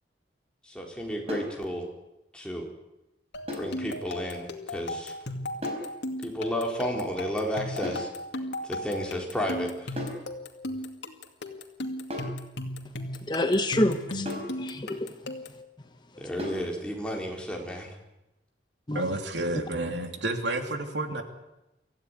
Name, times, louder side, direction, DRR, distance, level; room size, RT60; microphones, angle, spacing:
voice 1, 0.7-1.8 2.3-2.6 3.6-5.1 6.2-8.1 8.6-9.9 16.2-18.0, equal, 5° left, -1 dB, 4.3 m, -32 dB
sound 1, 1.3-1.6 3.5-3.8 5.6-5.9 7.8-8.1 10.0-10.3 12.1-12.4 14.3-14.6 16.4-16.7, left 1 dB, 35° right, 5.3 m, -35 dB
sound 2, 3.3-15.7, left 1 dB, 85° left, 2.4 m, -37 dB
voice 2, 12.8-14.3 14.6-15.1 18.9-19.0, left 1 dB, 25° left, 7 dB, 1.2 m, -27 dB
voice 3, 18.9-21.2, right 2 dB, 85° right, 5 dB, 3.1 m, -30 dB
25.0 x 15.5 x 9.9 m, 0.94 s
head